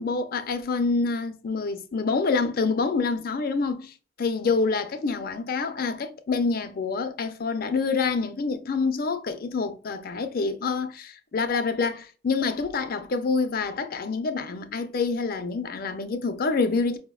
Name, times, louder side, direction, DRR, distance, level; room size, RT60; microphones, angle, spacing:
voice 1, 0.0-17.0, left 4 dB, 50° left, 0.5 m, -27 dB
5.0 x 2.1 x 2.3 m
head